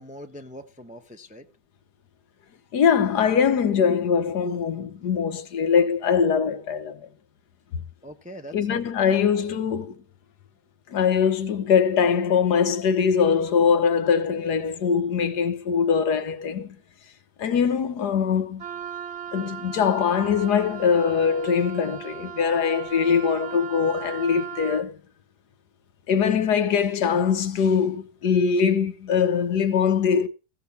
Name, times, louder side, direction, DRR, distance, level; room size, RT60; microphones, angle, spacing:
voice 1, 0.0-1.5 8.0-9.1, equal, 10° right, 0.6 m, -42 dB
voice 2, 2.7-7.0 8.5-10.0 10.9-16.8 17.4-18.6 19.3-25.0 26.1-30.3, left 6 dB, 75° left, 1.6 m, -22 dB
Wind instrument woodwind instrument, 18.6-24.9, right 8 dB, 50° right, 1.1 m, -37 dB
15.5 x 6.0 x 6.9 m
omnidirectional pair, 1.7 m